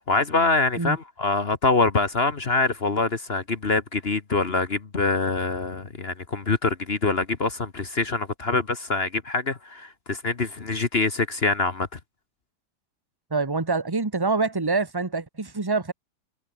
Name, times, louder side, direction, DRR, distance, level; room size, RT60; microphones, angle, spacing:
voice 1, 0.1-12.0, left 3 dB, 35° left, 1.5 m, -25 dB
voice 2, 13.3-15.9, right 3 dB, 15° right, 1.3 m, -25 dB
omnidirectional pair, 1.8 m